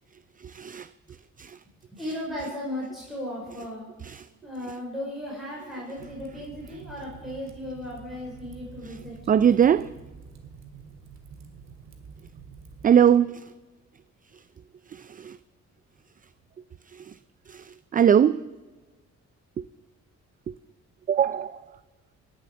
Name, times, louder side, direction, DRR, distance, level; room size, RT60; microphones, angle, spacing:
voice 1, 0.4-0.9 1.4-1.6 4.0-4.3 9.3-9.9 12.8-13.4 14.9-15.4 16.9-17.1 17.5-18.4 19.6-19.7 20.5-20.6 21.1-21.6, right 8 dB, 30° right, 17 dB, 0.3 m, -21 dB
voice 2, 1.9-3.9 4.4-9.2, left 1 dB, ahead, -5 dB, 5.2 m, -36 dB
Fire, 6.0-13.0, right 5 dB, 60° right, 2.3 m, -47 dB
18.5 x 7.9 x 7.5 m, 1.3 s
cardioid pair, 90°, 30 cm